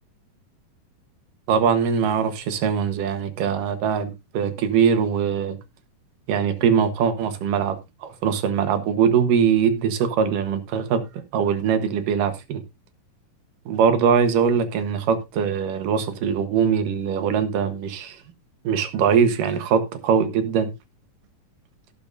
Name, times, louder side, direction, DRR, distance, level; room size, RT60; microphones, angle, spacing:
voice 1, 1.5-5.6 6.3-11.0 11.3-12.6 13.7-18.2 18.6-20.7, right 7 dB, 90° right, 3.0 m, -22 dB
17.5 x 7.0 x 2.6 m
omnidirectional pair, 3.7 m